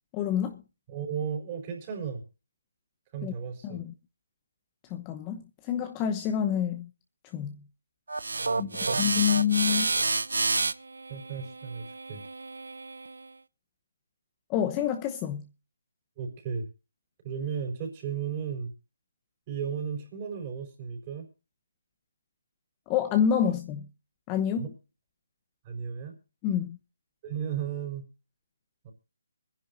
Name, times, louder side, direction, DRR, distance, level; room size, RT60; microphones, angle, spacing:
voice 1, 0.1-0.6 3.2-3.3 3.6-3.9 4.9-6.9 7.3-7.5 8.6-9.9 14.5-15.4 22.9-23.9 24.3-24.6 26.4-26.8, left 9 dB, 20° left, 0.9 m, -27 dB
voice 2, 0.9-2.2 3.1-3.8 8.4-9.0 11.1-12.2 16.2-16.7 17.2-18.7 19.5-21.3 24.6-24.7 25.6-26.2 27.2-28.0 28.8-28.9, right 7 dB, 25° right, 4.6 m, -35 dB
sound 1, 8.1-13.3, right 3 dB, 85° right, 0.6 m, -30 dB
24.5 x 10.5 x 2.6 m
hypercardioid pair, 160°, 0 cm